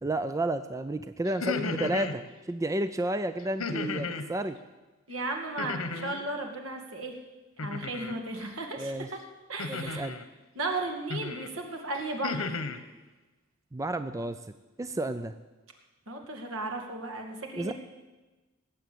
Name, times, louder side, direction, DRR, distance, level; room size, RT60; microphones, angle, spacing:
voice 1, 0.0-4.6 8.7-9.1 9.7-10.2 13.7-14.4 14.8-15.3 17.5-17.7, right 1 dB, 15° right, 10 dB, 0.4 m, -31 dB
sound 1, 1.3-2.2 3.6-4.3 5.6-6.2 7.6-8.2 9.6-10.2 11.1-11.5 11.9-12.8, left 3 dB, 90° left, 1.1 m, -34 dB
voice 2, 5.1-7.2 7.6-9.2 9.5-10.1 10.6-12.7 16.1-17.7, right 2 dB, 70° right, 3 dB, 2.3 m, -35 dB
18.5 x 7.9 x 8.6 m, 1.2 s
head